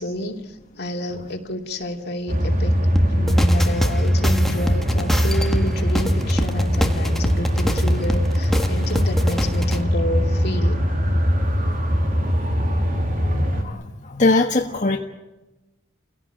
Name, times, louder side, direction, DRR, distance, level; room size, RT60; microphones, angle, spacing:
voice 1, 0.0-2.7 3.1-10.8, left 1 dB, 60° left, 3 dB, 2.8 m, -29 dB
sound 1, 2.3-13.6, equal, 45° right, 3.8 m, -21 dB
sound 2, 3.0-9.8, equal, ahead, 1.8 m, -26 dB
voice 2, 13.3-15.0, left 2 dB, 40° left, 1 dB, 1.5 m, -21 dB
30.0 x 17.0 x 9.1 m, 1.1 s
head